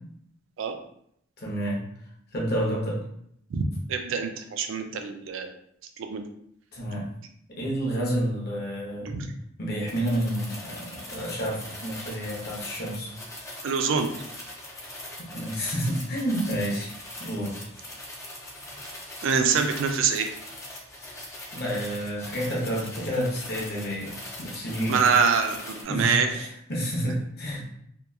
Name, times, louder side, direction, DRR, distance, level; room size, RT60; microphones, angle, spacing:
voice 1, 1.4-1.8 2.3-3.0 6.7-7.1 7.5-9.2 9.6-13.1 15.3-16.9 17.2-17.6 21.5-25.0 25.9-27.7, equal, 55° left, -3 dB, 0.8 m, -29 dB
voice 2, 3.9-5.5 6.0-6.2 9.1-9.3 13.6-14.1 19.2-20.3 24.9-26.3, right 5 dB, 70° right, 6 dB, 0.3 m, -25 dB
sound 1, 9.9-25.8, left 1 dB, 15° left, 0.5 m, -41 dB
2.8 x 2.3 x 2.3 m, 0.70 s
head